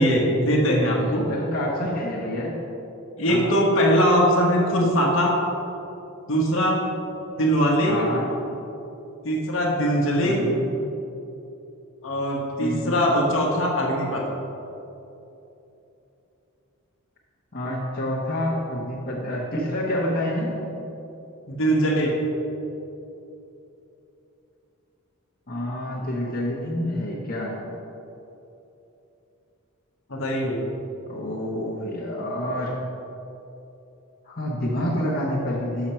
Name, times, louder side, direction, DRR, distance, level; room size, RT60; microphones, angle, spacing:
voice 1, 0.0-1.3 3.2-5.4 6.3-6.8 7.4-8.0 9.2-10.4 12.0-14.2 21.5-22.1 30.1-30.6, equal, 60° left, -2 dB, 1.1 m, -21 dB
voice 2, 1.1-2.6 3.3-3.6 7.8-8.3 10.3-10.6 12.6-13.0 17.5-20.5 25.5-27.6 31.1-32.7 34.3-35.9, left 1 dB, 40° left, -5 dB, 0.9 m, -28 dB
6.4 x 5.9 x 4.3 m, 2.9 s
head